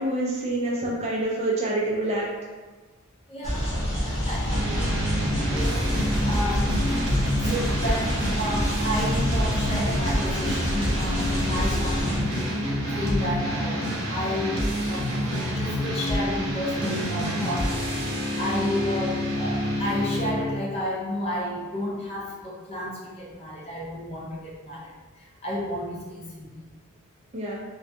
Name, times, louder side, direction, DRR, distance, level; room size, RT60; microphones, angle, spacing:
voice 1, 0.0-2.3 27.3-27.6, right 1 dB, 30° right, -4 dB, 0.3 m, -26 dB
voice 2, 3.3-3.7 4.0-4.9 5.5-5.8 6.2-6.7 7.4-12.3 12.9-15.1 15.5-17.7 18.4-24.9 25.4-26.5, left 1 dB, 30° left, -5 dB, 0.5 m, -32 dB
sound 1, 3.4-12.2, equal, 65° left, 0.9 m, -28 dB
sound 2, 4.5-20.5, equal, 80° right, 0.6 m, -27 dB
2.5 x 2.2 x 2.5 m, 1.3 s
head